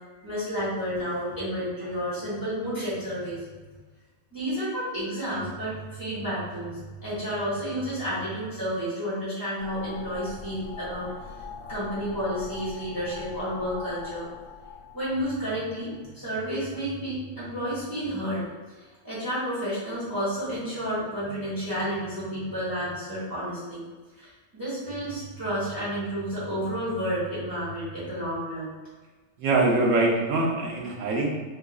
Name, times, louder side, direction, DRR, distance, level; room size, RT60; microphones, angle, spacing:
voice 1, 0.2-3.6 4.3-11.1 11.7-14.3 14.9-18.4 18.8-23.8 24.2-28.7, equal, 15° right, -11 dB, 1.3 m, -31 dB
sound 1, 9.6-16.0, left 5 dB, 90° left, 1.0 m, -42 dB
voice 2, 29.4-31.3, right 2 dB, 80° right, -1 dB, 1.1 m, -23 dB
3.7 x 3.1 x 2.3 m, 1.3 s
omnidirectional pair, 1.3 m